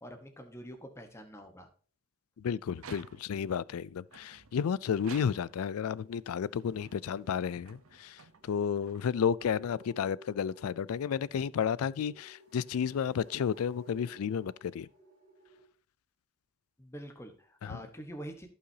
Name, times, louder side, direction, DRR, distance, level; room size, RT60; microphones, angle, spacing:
voice 1, 0.0-1.7 16.8-18.5, equal, 10° left, 1.1 m, -46 dB
voice 2, 2.4-8.2 8.4-14.9 17.6-17.8, left 7 dB, 70° left, 0.4 m, -32 dB
sound 1, 2.7-3.5 4.1-5.8 6.4-10.0, right 5 dB, 70° right, 0.8 m, -53 dB
sound 2, 5.8-15.6, equal, 35° right, 3.7 m, -58 dB
15.5 x 5.7 x 2.8 m
head